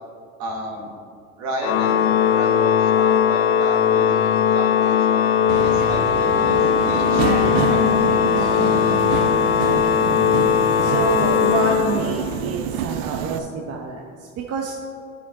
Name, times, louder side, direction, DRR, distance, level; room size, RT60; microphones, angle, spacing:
voice 1, 0.4-0.9 1.4-7.3 7.7-7.8 8.8-9.4, right 1 dB, 70° right, 2 dB, 1.6 m, -33 dB
Organ, 1.6-12.5, left 8 dB, 45° left, 0.5 m, -19 dB
Subway metro underground, 5.5-13.4, right 9 dB, 90° right, 0.5 m, -27 dB
voice 2, 7.1-8.8 10.8-14.7, right 4 dB, 50° right, 0 dB, 0.9 m, -28 dB
9.8 x 6.5 x 3.7 m, 2.2 s
supercardioid pair, 90°, 31 cm